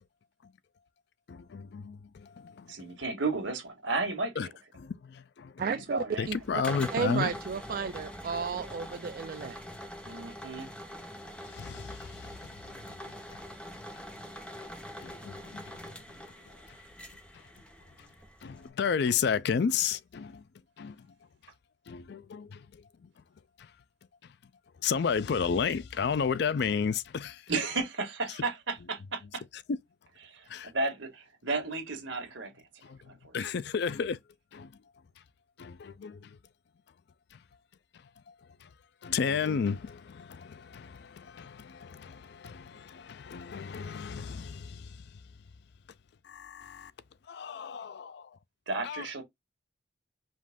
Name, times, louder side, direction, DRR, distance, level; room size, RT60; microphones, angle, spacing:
voice 1, 1.3-2.7 4.4-4.5 4.8-5.5 6.2-7.3 11.5-12.2 15.0-15.6 18.4-20.4 20.8-21.0 21.9-22.6 24.8-27.4 29.7-29.8 30.5-30.7 32.8-33.0 33.3-34.2 34.5-34.7 35.6-36.4 38.6-38.7 39.0-45.0 46.2-46.9 47.3-48.3 48.8-49.0, left 6 dB, 60° left, 0.4 m, -32 dB
voice 2, 2.7-4.5 5.9-6.3 10.0-10.7 27.5-29.4 30.2-32.5 33.1-33.3 48.7-49.2, right 3 dB, 75° right, 1.6 m, -33 dB
voice 3, 5.6-6.6 6.9-9.6, right 5 dB, 50° right, 0.3 m, -33 dB
sound 1, 6.2-18.7, equal, 5° left, 0.7 m, -44 dB
5.2 x 2.6 x 3.5 m
head